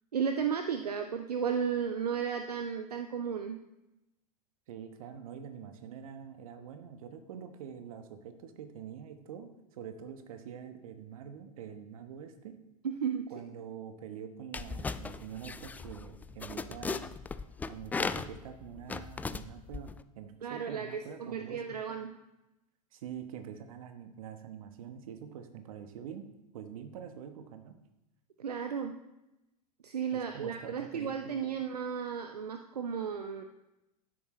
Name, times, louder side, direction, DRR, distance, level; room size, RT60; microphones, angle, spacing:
voice 1, 0.1-3.6 12.8-13.3 20.4-22.1 28.4-29.0 29.8-33.4, right 7 dB, 75° right, 7 dB, 0.7 m, -34 dB
voice 2, 4.7-12.6 13.3-17.2 17.7-19.9 20.1-21.8 22.9-26.2 26.5-27.8 30.1-31.4, right 8 dB, 60° right, 8 dB, 1.2 m, -45 dB
sound 1, 14.5-20.0, left 4 dB, 10° left, 0.3 m, -38 dB
12.5 x 10.5 x 3.2 m, 0.93 s
figure-of-eight pair, 90°, 20 cm